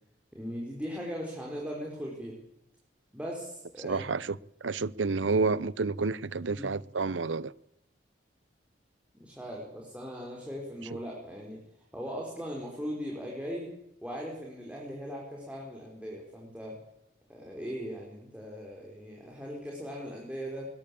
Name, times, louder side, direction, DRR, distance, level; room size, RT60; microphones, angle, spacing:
voice 1, 0.3-2.4 3.1-4.1 6.4-6.7 9.1-11.6 11.9-13.7 14.0-16.8 17.3-20.7, equal, 5° right, -2 dB, 4.9 m, -39 dB
voice 2, 3.8-4.4 4.6-7.5, right 4 dB, 90° right, 21 dB, 0.8 m, -29 dB
21.0 x 21.0 x 8.7 m, 0.82 s
head